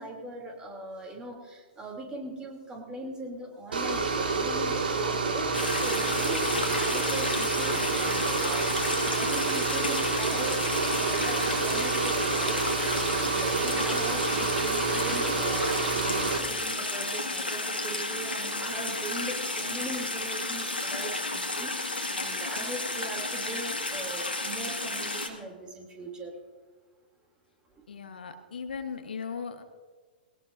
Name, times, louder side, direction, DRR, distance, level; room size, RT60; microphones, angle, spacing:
voice 1, 0.0-26.3 27.7-27.8, right 2 dB, 15° right, 1 dB, 3.1 m, -40 dB
sound 1, 3.7-16.4, right 4 dB, 70° right, 2.1 m, -28 dB
sound 2, 5.5-25.3, left 2 dB, 90° left, 1.9 m, -32 dB
voice 2, 27.9-29.6, left 6 dB, 70° left, 7 dB, 1.2 m, -37 dB
20.5 x 18.0 x 2.7 m, 1.4 s
figure-of-eight pair, 110°, 5 cm